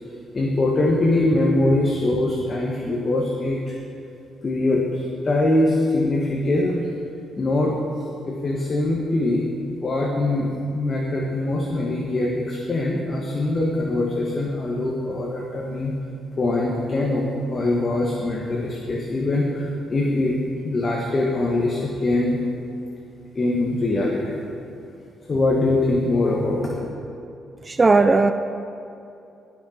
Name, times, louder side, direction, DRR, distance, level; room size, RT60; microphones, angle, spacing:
voice 1, 0.3-3.8 4.4-6.9 7.4-7.7 8.2-15.9 16.4-20.4 20.6-22.4 23.3-24.4 25.3-26.8, left 2 dB, 35° left, -2 dB, 1.5 m, -23 dB
voice 2, 27.6-28.3, right 3 dB, 25° right, 9 dB, 0.5 m, -16 dB
18.5 x 6.4 x 4.4 m, 2.7 s
cardioid pair, 90°, 0 cm